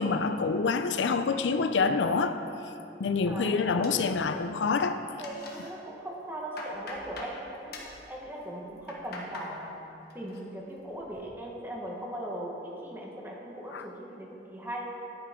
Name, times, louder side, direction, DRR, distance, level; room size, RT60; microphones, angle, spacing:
voice 1, 0.0-2.4 3.0-5.0 13.7-13.8, left 4 dB, 85° left, 10 dB, 0.5 m, -26 dB
voice 2, 3.3-3.9 5.2-9.7 10.1-14.9, right 1 dB, 10° right, -2 dB, 1.4 m, -39 dB
sound 1, 3.8-4.7 5.0-5.7 6.1-7.4 7.7-8.0 8.6-9.5 9.9-10.4 10.8-11.2, left 2 dB, 60° left, 1.4 m, -44 dB
11.0 x 9.4 x 3.7 m, 2.8 s
head